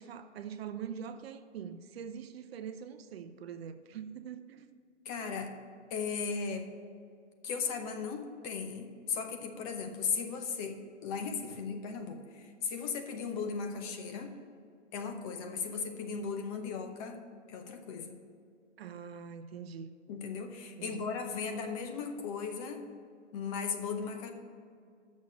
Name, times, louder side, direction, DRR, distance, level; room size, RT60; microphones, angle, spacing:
voice 1, 0.0-4.7 18.8-19.9 20.8-21.1, right 7 dB, 55° right, 9 dB, 0.7 m, -43 dB
voice 2, 5.0-5.5 5.9-6.7 7.4-14.3 14.9-17.2 17.5-18.2 20.1-22.8 23.3-24.3, left 5 dB, 30° left, 6 dB, 0.9 m, -37 dB
7.3 x 6.3 x 7.2 m, 2.2 s
hypercardioid pair, 135°, 37 cm